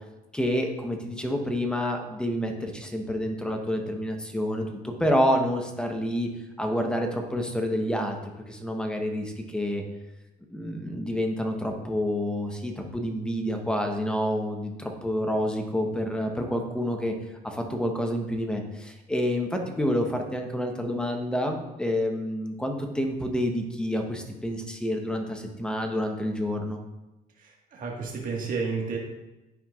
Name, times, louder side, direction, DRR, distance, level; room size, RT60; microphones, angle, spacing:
voice 1, 0.3-6.3 6.6-9.8 10.5-17.1 17.4-26.8, equal, 5° left, 3 dB, 0.9 m, -28 dB
voice 2, 27.4-29.0, right 4 dB, 55° right, -1 dB, 1.6 m, -31 dB
10.5 x 4.5 x 2.4 m, 1.0 s
cardioid pair, 110°, 17 cm